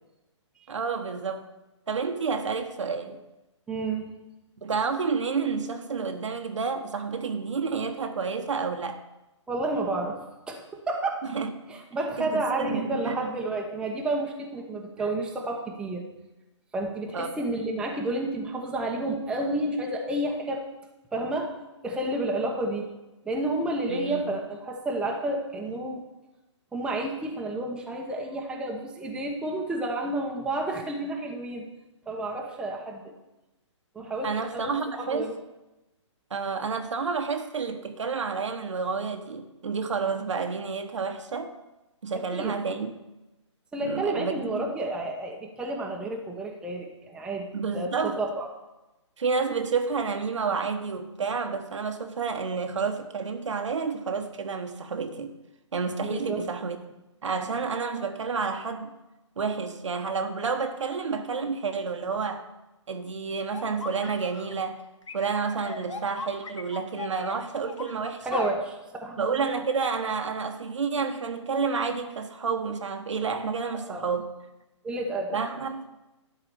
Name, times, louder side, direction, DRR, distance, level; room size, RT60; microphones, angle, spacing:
voice 1, 0.7-1.4 1.9-3.2 4.6-9.0 11.3-11.8 12.2-13.2 17.1-17.3 23.9-24.2 34.2-35.3 36.3-41.5 42.0-42.9 43.8-44.7 47.5-48.2 49.2-55.3 55.7-56.8 57.2-59.0 59.4-62.5 62.9-64.8 65.1-68.5 69.2-74.3 75.3-75.9, right 5 dB, 75° right, 1.3 m, -30 dB
voice 2, 3.7-4.1 9.5-10.2 10.5-11.2 11.7-16.0 16.7-20.6 21.1-21.5 21.8-22.9 23.2-26.0 26.7-31.7 32.1-33.0 33.9-35.3 42.3-42.6 43.7-48.5 56.0-56.4 68.2-68.7 69.0-69.4 73.7-74.1 74.8-75.4, right 2 dB, 5° right, 1.0 m, -30 dB
sound 1, 63.5-64.5 65.1-68.6, left 5 dB, 80° left, 1.1 m, -38 dB
11.5 x 4.8 x 6.9 m
hypercardioid pair, 145°, 16 cm